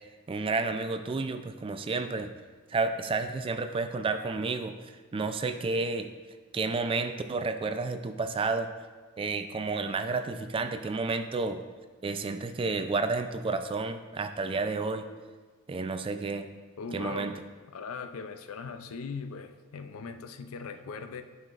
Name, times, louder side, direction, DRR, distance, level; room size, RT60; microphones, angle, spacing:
voice 1, 0.3-2.3 2.7-4.7 5.1-6.1 6.5-8.7 9.2-11.6 12.0-15.1 15.7-16.5 16.9-17.3, right 3 dB, 25° right, 8 dB, 0.3 m, -31 dB
voice 2, 16.8-17.4 17.7-21.2, left 5 dB, 90° left, 8 dB, 0.5 m, -39 dB
10.5 x 5.6 x 2.5 m, 1.4 s
head